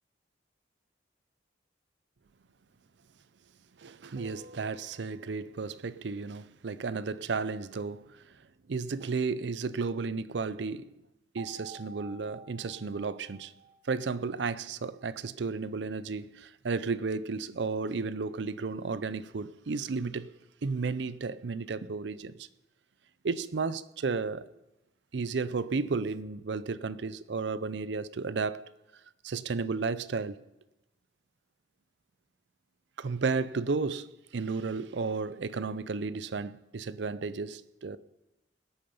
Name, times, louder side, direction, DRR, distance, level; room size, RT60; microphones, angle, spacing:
voice 1, 3.8-8.2 8.7-10.9 11.3-13.5 13.9-20.3 20.6-22.5 23.2-24.5 25.1-28.7 29.2-30.4 33.0-38.0, right 4 dB, 70° right, 0.5 m, -33 dB
sound 1, 4.1-5.7 11.4-14.7, right 4 dB, 50° right, 2.5 m, -51 dB
20.0 x 8.7 x 5.5 m
head